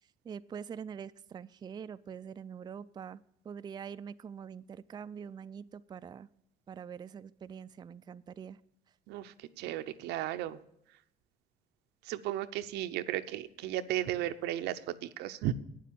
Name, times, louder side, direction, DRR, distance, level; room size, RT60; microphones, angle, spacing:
voice 1, 0.2-6.3 6.7-8.6, right 7 dB, 25° right, 13 dB, 0.3 m, -44 dB
voice 2, 9.1-10.6 12.0-15.5, right 13 dB, 85° right, 11 dB, 0.7 m, -35 dB
9.1 x 7.6 x 8.5 m, 0.79 s
cardioid pair, 110°, 17 cm